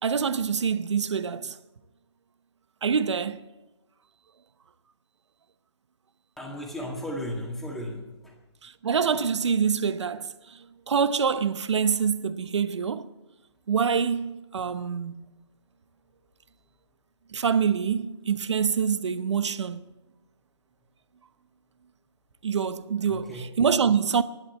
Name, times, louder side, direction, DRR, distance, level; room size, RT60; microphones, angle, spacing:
voice 1, 0.0-1.6 2.8-3.4 8.6-13.1 13.7-15.2 17.3-19.8 22.4-24.2, right 6 dB, 80° right, 0.9 m, -26 dB
voice 2, 6.4-8.3 23.1-23.5, equal, ahead, 1.8 m, -35 dB
11.5 x 11.0 x 7.6 m
hypercardioid pair, 165°, 15 cm